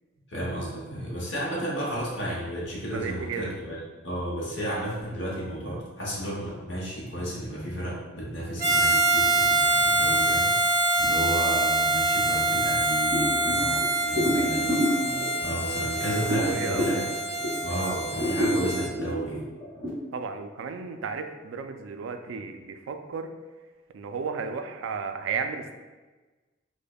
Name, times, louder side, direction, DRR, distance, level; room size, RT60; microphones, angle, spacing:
voice 1, 0.3-3.8 4.0-14.7 15.4-17.0 17.6-19.4, right 1 dB, 65° left, -4 dB, 0.9 m, -32 dB
voice 2, 2.9-3.6 14.1-14.8 16.0-16.9 20.1-23.3 23.9-25.7, right 5 dB, 85° right, 6 dB, 0.3 m, -34 dB
Harmonica, 8.6-18.9, right 2 dB, 15° right, 0.6 m, -25 dB
sound 1, 13.1-17.7 18.1-19.9, equal, 10° left, 1.4 m, -29 dB
5.0 x 2.1 x 2.2 m, 1.2 s
head